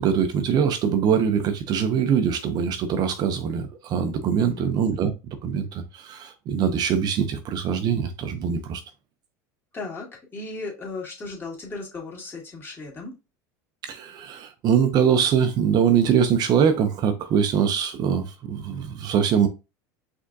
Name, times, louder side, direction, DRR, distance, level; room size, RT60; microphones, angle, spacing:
voice 1, 0.0-8.8 13.8-19.5, right 7 dB, 45° right, 0.6 m, -23 dB
voice 2, 4.4-4.7 9.7-13.2, left 3 dB, 25° left, 2.0 m, -36 dB
5.0 x 3.5 x 2.6 m
supercardioid pair, 115°, 10 cm